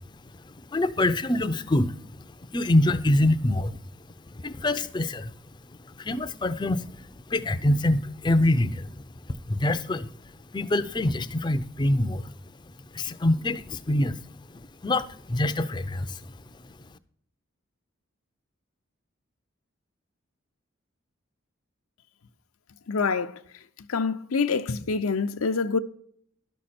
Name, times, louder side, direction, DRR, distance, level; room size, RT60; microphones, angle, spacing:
voice 1, 0.4-3.8 4.3-5.3 6.0-9.0 9.5-10.1 10.5-12.3 12.9-14.2 14.5-16.3, left 1 dB, 20° left, 0.4 m, -25 dB
voice 2, 22.9-23.4 23.9-25.8, left 4 dB, 90° left, 0.6 m, -26 dB
12.0 x 6.4 x 4.2 m
head